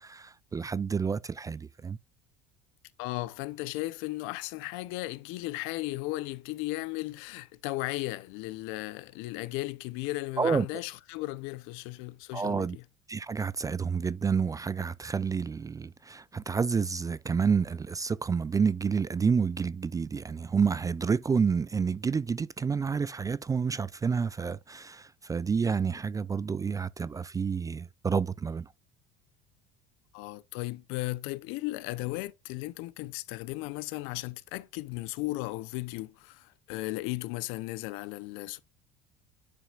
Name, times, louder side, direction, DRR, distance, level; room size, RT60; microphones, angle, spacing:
voice 1, 0.0-2.0 10.4-10.7 12.3-12.8 13.1-28.7, right 5 dB, 15° right, 0.3 m, -29 dB
voice 2, 3.0-12.8 30.1-38.6, left 20 dB, 70° left, 0.7 m, -36 dB
10.0 x 5.7 x 2.4 m
supercardioid pair, 95°, 21 cm